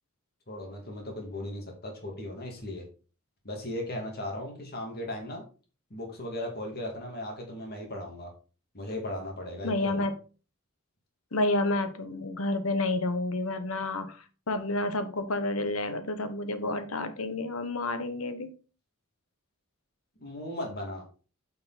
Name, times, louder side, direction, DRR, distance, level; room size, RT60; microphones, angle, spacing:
voice 1, 0.5-2.8 3.4-5.4 5.9-8.3 8.7-9.9 20.2-21.0, left 1 dB, 50° left, 1 dB, 2.6 m, -37 dB
voice 2, 9.6-10.1 11.3-18.5, left 2 dB, 80° left, 9 dB, 1.2 m, -30 dB
8.9 x 5.5 x 4.2 m, 0.36 s
head